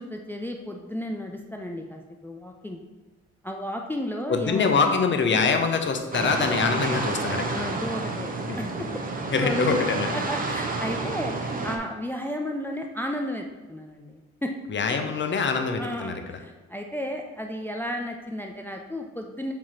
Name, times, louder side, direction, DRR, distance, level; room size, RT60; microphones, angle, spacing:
voice 1, 0.0-2.8 3.4-4.7 7.5-8.3 8.6-8.9 9.3-9.8 10.1-11.3 11.6-14.5 15.8-19.5, equal, 5° left, 3 dB, 0.4 m, -33 dB
voice 2, 4.3-7.7 8.4-8.6 9.3-10.2 14.7-16.4, left 5 dB, 40° left, 5 dB, 0.8 m, -24 dB
sound 1, 6.1-11.8, right 3 dB, 30° right, 0.8 m, -30 dB
7.3 x 3.0 x 4.3 m, 1.2 s
cardioid pair, 90°, 30 cm